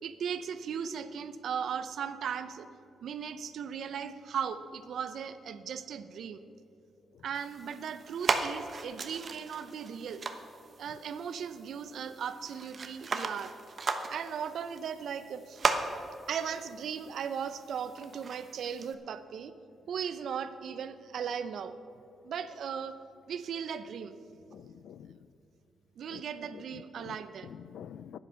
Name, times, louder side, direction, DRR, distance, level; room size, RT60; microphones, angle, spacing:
voice 1, 0.0-2.7 3.0-6.4 7.2-10.3 10.8-13.5 14.1-15.6 16.3-19.5 19.9-21.7 22.2-23.0 23.3-24.2 26.0-27.5, right 7 dB, 70° right, 0.6 m, -37 dB
sound 1, 7.3-18.9, right 4 dB, 50° right, 1.0 m, -37 dB
voice 2, 24.5-25.1 26.1-26.2 26.5-27.2 27.4-28.2, left 9 dB, 80° left, 0.3 m, -47 dB
10.0 x 9.7 x 7.0 m
supercardioid pair, 60°, 0 cm